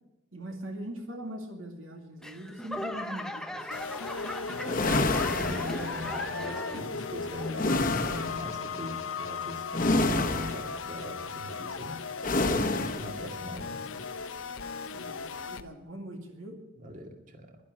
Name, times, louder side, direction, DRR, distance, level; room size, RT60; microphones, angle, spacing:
voice 1, 0.3-3.7 14.9-16.6, right 1 dB, 75° right, 3 dB, 2.3 m, -41 dB
Laughter / Clapping / Crowd, 2.2-7.0 7.3-7.9 8.4-8.5, left 1 dB, 5° left, 0.8 m, -38 dB
sound 1, 3.7-15.6, left 5 dB, 75° left, 0.9 m, -37 dB
voice 2, 4.5-12.0 12.5-14.0 15.8-16.0 16.8-17.6, equal, 40° right, 4 dB, 2.2 m, -41 dB
sound 2, 4.6-6.3 7.6-8.5 9.7-10.8 12.2-13.2, left 2 dB, 40° left, 1.3 m, -28 dB
11.5 x 11.5 x 9.5 m, 0.93 s
head